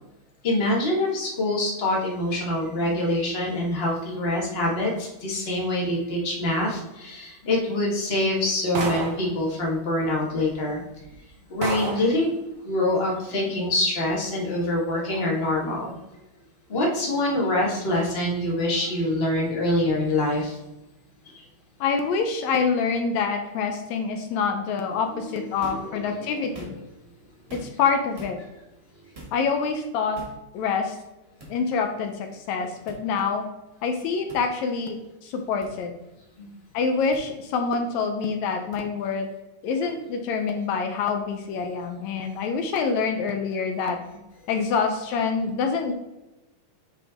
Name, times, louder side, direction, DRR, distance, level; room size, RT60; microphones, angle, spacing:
voice 1, 0.4-10.8 11.5-12.3 12.6-15.9 16.7-20.6 21.3-21.4 25.4-26.4 36.4-36.5 39.0-39.1, left 1 dB, 55° left, -3 dB, 0.6 m, -25 dB
sound 1, 8.8-9.3 10.4-10.5 11.0-11.1 11.6-12.2, right 3 dB, 90° right, 1.0 m, -29 dB
voice 2, 21.8-26.8 27.5-28.4 29.3-30.2 30.5-31.0 31.5-33.4 33.8-35.0 35.2-35.9 36.7-39.3 39.6-44.0 44.5-45.9, left 5 dB, 75° left, 5 dB, 1.9 m, -26 dB
sound 2, 25.6-25.9 26.4-27.0 27.5-27.9 28.2-28.4 29.1-29.4 30.1-30.4 31.4-31.5 32.9-33.0 34.3-34.4 35.6-35.7 37.1-37.2 38.7-38.8, right 2 dB, 35° right, 0.9 m, -42 dB
9.1 x 3.3 x 3.5 m, 0.99 s
omnidirectional pair, 3.5 m